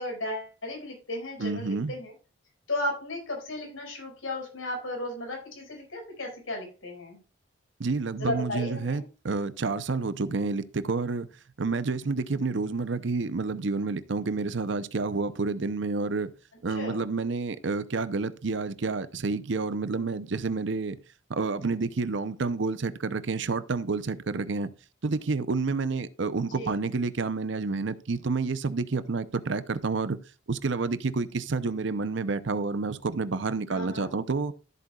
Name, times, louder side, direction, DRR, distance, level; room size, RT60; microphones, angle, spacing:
voice 1, 0.0-2.1 2.7-7.2 8.2-9.0 16.8-17.1 26.5-26.8 33.7-34.1, left 1 dB, 90° left, 5.2 m, -35 dB
voice 2, 1.4-1.9 7.8-11.3 11.6-16.3 16.6-21.0 21.3-24.7 25.0-30.2 30.5-34.5, right 4 dB, 60° right, 0.6 m, -29 dB
13.5 x 7.8 x 2.3 m
head